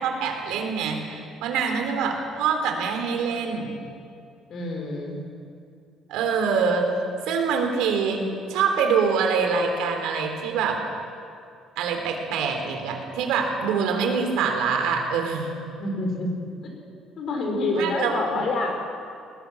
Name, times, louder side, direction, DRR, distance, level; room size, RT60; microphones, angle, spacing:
voice 1, 0.0-3.8 6.1-6.8 7.3-10.8 11.8-15.6 17.7-18.4, right 5 dB, 80° right, 4 dB, 3.6 m, -25 dB
voice 2, 4.5-5.2 15.8-16.3 16.6-16.7 17.2-18.9, left 2 dB, 40° left, 3 dB, 4.0 m, -27 dB
20.5 x 20.0 x 7.2 m, 2.4 s
cardioid pair, 180°, 0 cm